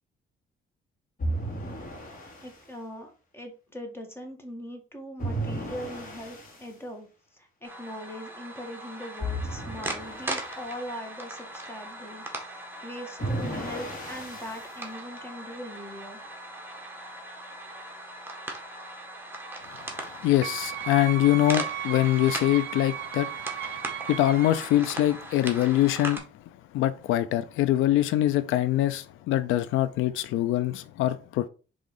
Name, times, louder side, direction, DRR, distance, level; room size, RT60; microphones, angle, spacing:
sound 1, 1.2-2.6 5.2-6.7 9.2-10.6 13.2-14.8, right 1 dB, 40° left, 2.4 m, -34 dB
voice 1, 2.4-7.1 7.3-12.6 12.8-16.2, equal, 10° left, 1.8 m, -41 dB
sound 2, 7.6-26.2, right 1 dB, 10° right, 1.7 m, -39 dB
voice 2, 20.2-23.8 24.1-26.2 26.7-31.5, left 14 dB, 90° left, 0.5 m, -24 dB
Wind instrument woodwind instrument, 20.4-24.7, right 12 dB, 60° right, 0.5 m, -36 dB
5.0 x 3.6 x 5.3 m
cardioid pair, 90°, 20 cm